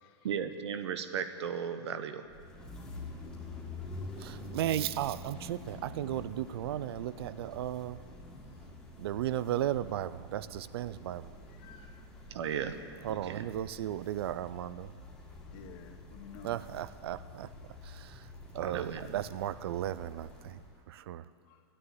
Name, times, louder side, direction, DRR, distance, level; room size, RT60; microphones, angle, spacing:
voice 1, 0.2-2.2 12.3-12.8 13.1-13.4 18.6-19.1, right 7 dB, 80° right, 9 dB, 1.0 m, -35 dB
sound 1, 2.2-20.8, left 2 dB, 5° left, 1.9 m, -47 dB
voice 2, 4.2-8.0 9.0-11.3 13.0-14.9 16.4-17.5 17.8-18.3 18.5-21.3, right 12 dB, 65° right, 16 dB, 0.5 m, -35 dB
voice 3, 11.5-12.1 15.5-16.6 21.4-21.6, left 6 dB, 35° left, 5 dB, 1.0 m, -52 dB
11.0 x 9.8 x 9.7 m, 2.3 s
supercardioid pair, 160°, 14 cm